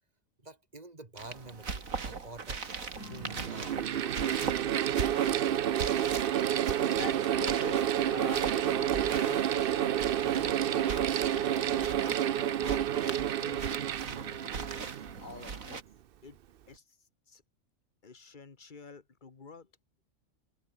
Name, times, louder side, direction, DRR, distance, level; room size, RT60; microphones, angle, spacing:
voice 1, 0.4-2.7 3.0-3.8, right 2 dB, 30° right, 2.1 m, -48 dB
sound 1, 1.2-15.8, right 5 dB, 90° right, 2.7 m, -40 dB
Mechanical fan, 2.0-2.1 2.9-15.6, right 10 dB, 55° right, 0.7 m, -29 dB
sound 2, 2.9-8.2, left 3 dB, 80° left, 4.3 m, -53 dB
voice 2, 6.8-10.9 11.3-14.6 15.2-15.8 16.2-16.4 16.7-17.0 17.3-17.4 18.0-19.7, left 4 dB, 35° left, 1.6 m, -47 dB
omnidirectional pair, 1.4 m